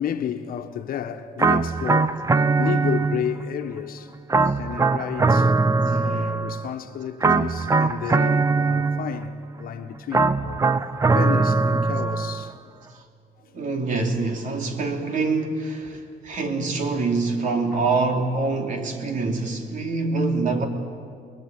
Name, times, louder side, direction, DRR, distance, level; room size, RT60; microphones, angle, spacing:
voice 1, 0.0-4.1 4.4-5.7 6.0-10.7 11.1-12.6 15.9-16.4, left 9 dB, 60° left, 1.5 m, -32 dB
sound 1, 1.4-3.5 4.3-6.7 7.2-9.3 10.1-12.5, right 4 dB, 20° right, 0.8 m, -21 dB
voice 2, 13.5-20.7, right 3 dB, 50° right, 3.3 m, -25 dB
28.5 x 21.0 x 8.5 m
cardioid pair, 110°, 17 cm